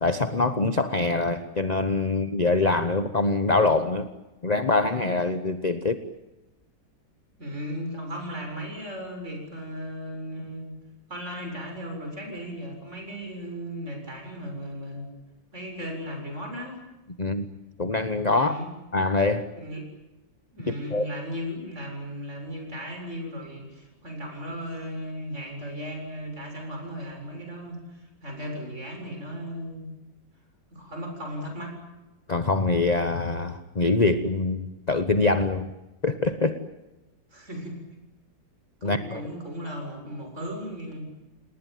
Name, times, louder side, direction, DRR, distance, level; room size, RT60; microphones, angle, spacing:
voice 1, 0.0-4.1 4.4-6.0 17.2-17.5 17.8-18.6 18.9-19.5 20.7-21.1 32.3-35.7 36.0-36.6 38.8-39.2, left 3 dB, 30° left, 10 dB, 0.9 m, -24 dB
voice 2, 7.4-10.7 11.1-15.1 15.5-16.8 18.3-18.7 19.6-19.9 20.5-29.9 30.7-31.8 37.3-37.8 38.8-41.1, equal, 40° right, 3 dB, 7.6 m, -36 dB
29.0 x 19.5 x 9.3 m, 1.0 s
omnidirectional pair, 2.0 m